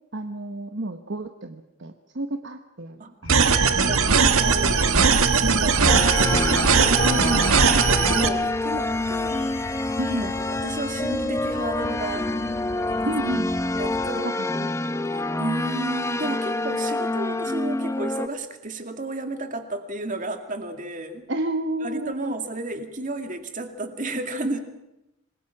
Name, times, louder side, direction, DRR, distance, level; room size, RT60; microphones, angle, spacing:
voice 1, 0.1-4.7 5.4-5.8 7.0-7.6 10.0-10.3 13.0-13.5 14.2-14.7 21.3-22.1, right 1 dB, 55° right, 6 dB, 1.1 m, -31 dB
sound 1, 3.2-14.1, left 1 dB, 85° left, 3.2 m, -39 dB
sound 2, 3.3-8.3, right 5 dB, 80° right, 1.5 m, -19 dB
voice 2, 4.4-5.0 5.3-7.1 7.9-9.4 10.2-12.3 12.9-13.1 13.7-14.3 15.1-21.2 21.8-24.6, right 2 dB, 40° right, 6 dB, 2.3 m, -32 dB
sound 3, 5.9-18.3, left 2 dB, 15° left, 0.8 m, -27 dB
27.0 x 21.0 x 6.0 m, 0.91 s
head